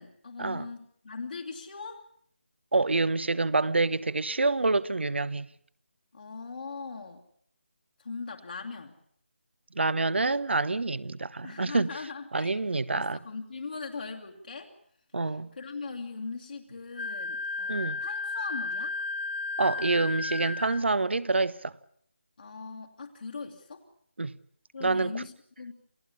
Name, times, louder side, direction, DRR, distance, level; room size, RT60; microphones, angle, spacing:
voice 1, 0.0-2.0 6.1-7.2 8.0-9.0 11.4-12.6 12.9-14.7 15.3-19.0 22.4-23.8 24.7-25.7, left 4 dB, 55° left, 2.4 m, -40 dB
voice 2, 2.7-5.5 9.7-11.9 12.3-13.2 15.1-15.5 17.7-18.0 19.6-21.7 24.2-24.4 24.8-25.2, right 3 dB, 70° right, 1.1 m, -27 dB
Wind instrument woodwind instrument, 17.0-20.8, left 3 dB, 70° left, 1.3 m, -33 dB
28.5 x 15.5 x 8.6 m
figure-of-eight pair, 160°, 6 cm